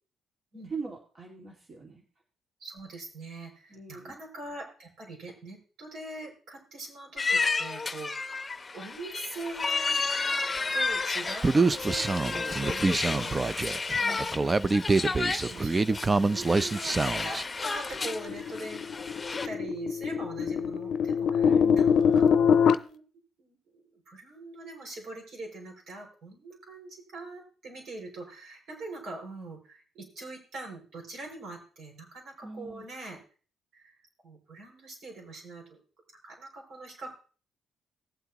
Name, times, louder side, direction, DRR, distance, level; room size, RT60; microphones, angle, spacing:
voice 1, 0.7-2.0 3.7-4.1 14.0-14.3 21.4-21.9 32.4-32.8, right 4 dB, 45° right, -1 dB, 2.2 m, -41 dB
voice 2, 2.6-10.4 10.7-14.5 15.2-23.0 23.4-33.2 33.7-34.0 34.2-35.8 36.2-37.1, right 2 dB, 70° right, -1 dB, 6.1 m, -43 dB
sound 1, 7.2-19.5, left 4 dB, 25° left, 0.8 m, -32 dB
Human voice, 11.4-17.4, right 3 dB, 25° right, 0.5 m, -26 dB
sound 2, 18.0-22.7, left 7 dB, 65° left, 0.6 m, -24 dB
19.0 x 7.9 x 3.0 m, 0.39 s
cardioid pair, 90°, 0 cm